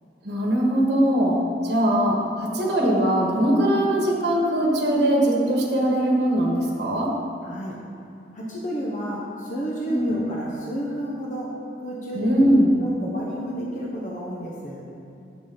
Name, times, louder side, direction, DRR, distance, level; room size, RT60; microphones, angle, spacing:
voice 1, 0.2-1.4 1.6-7.1 9.9-10.1 12.1-12.7, right 1 dB, 65° right, -2 dB, 1.2 m, -21 dB
voice 2, 7.4-7.8 8.3-11.5 11.8-12.5 12.8-14.8, right 1 dB, 45° left, -4 dB, 0.9 m, -31 dB
7.1 x 6.3 x 3.8 m, 2.6 s
head